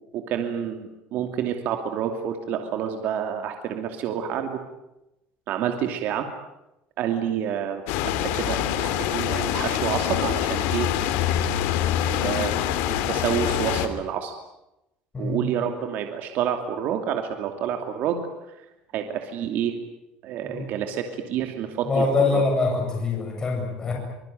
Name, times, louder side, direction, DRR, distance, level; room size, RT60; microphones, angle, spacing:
voice 1, 0.1-4.6 5.5-6.3 7.0-7.8 8.2-10.9 12.1-12.5 12.9-14.3 15.2-18.3 18.9-19.7 20.2-22.1 22.3-22.4, right 9 dB, 55° right, 5 dB, 2.7 m, -28 dB
sound 1, 7.9-13.9, left 11 dB, 80° left, 2.8 m, -25 dB
voice 2, 21.8-23.9, left 3 dB, 20° left, 0 dB, 7.9 m, -24 dB
25.5 x 22.0 x 9.3 m, 0.91 s
cardioid pair, 155°, 4 cm